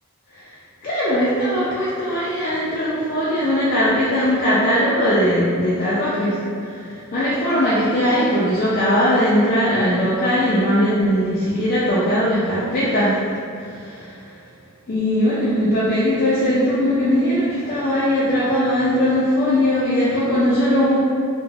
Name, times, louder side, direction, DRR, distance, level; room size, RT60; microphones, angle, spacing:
voice 1, 0.8-13.2 13.5-14.2 14.9-21.0, equal, 40° left, -9 dB, 0.4 m, -19 dB
2.3 x 2.1 x 3.2 m, 2.3 s
head